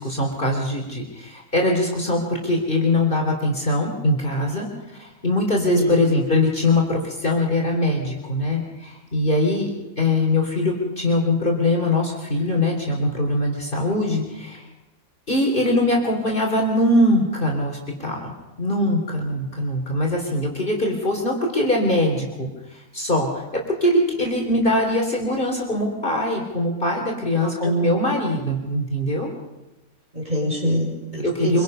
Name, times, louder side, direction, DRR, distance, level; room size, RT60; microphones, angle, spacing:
voice 1, 0.0-4.7 5.0-14.6 15.3-18.3 18.6-29.3 31.2-31.6, left 1 dB, 35° left, 0 dB, 3.3 m, -22 dB
voice 2, 27.3-27.7 30.1-31.6, equal, 30° right, -2 dB, 5.6 m, -26 dB
25.5 x 23.5 x 5.4 m, 1.0 s
omnidirectional pair, 1.5 m